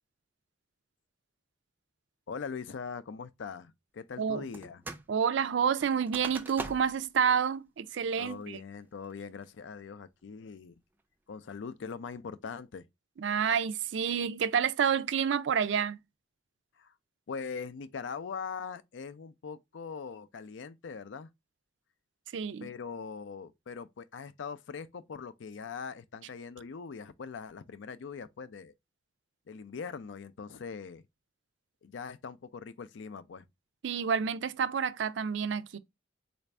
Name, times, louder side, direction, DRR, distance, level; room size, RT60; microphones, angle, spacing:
voice 1, 2.3-4.8 8.2-10.8 11.3-12.9 16.8-16.9 17.3-21.3 22.6-28.7 29.5-31.1 31.8-33.5, left 5 dB, 85° left, 0.4 m, -41 dB
sound 1, 4.5-5.1 5.4-7.1 7.5-7.6 8.1-8.5 9.0-9.4, right 2 dB, 10° right, 0.4 m, -43 dB
voice 2, 5.1-8.6 13.2-16.0 22.3-22.7 33.8-35.8, right 7 dB, 80° right, 0.4 m, -29 dB
4.1 x 2.5 x 3.2 m
head